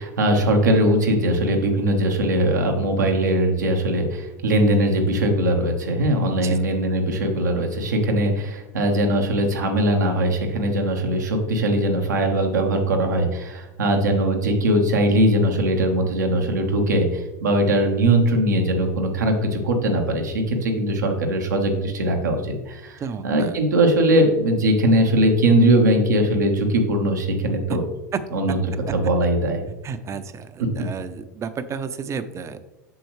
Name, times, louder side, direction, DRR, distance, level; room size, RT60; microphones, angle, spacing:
voice 1, 0.0-27.8 28.3-28.6 28.9-29.6, right 1 dB, 90° right, 2 dB, 1.3 m, -20 dB
voice 2, 6.4-6.7 23.0-23.6 27.7-27.8 28.1-28.2 29.8-32.6, right 6 dB, 30° right, 12 dB, 0.6 m, -31 dB
7.9 x 6.2 x 3.2 m, 1.0 s
hypercardioid pair, 90°, 9 cm